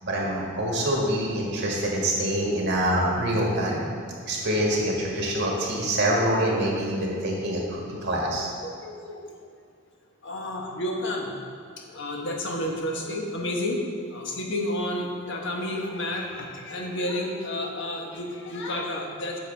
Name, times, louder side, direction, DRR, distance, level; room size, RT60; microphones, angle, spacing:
voice 1, 0.0-3.8 4.3-8.5, right 1 dB, 60° right, -3 dB, 1.7 m, -25 dB
voice 2, 8.2-9.2 10.2-11.4 11.8-19.4, left 1 dB, 65° left, 0 dB, 1.2 m, -31 dB
9.8 x 6.8 x 3.4 m, 2.2 s
head